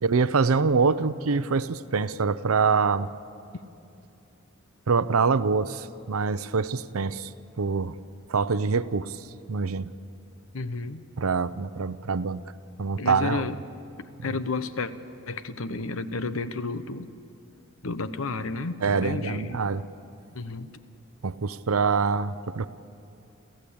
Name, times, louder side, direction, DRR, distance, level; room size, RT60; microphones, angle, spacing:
voice 1, 0.0-3.1 4.9-7.3 7.6-8.0 8.3-9.9 11.2-12.4 12.8-13.5 18.8-19.8 21.2-22.7, right 5 dB, 85° right, 15 dB, 0.6 m, -25 dB
voice 2, 10.5-11.0 13.0-13.6 14.2-14.9 15.3-17.1 17.8-19.6 20.3-20.7, left 3 dB, 70° left, 12 dB, 0.9 m, -31 dB
29.5 x 14.5 x 8.6 m, 2.7 s
head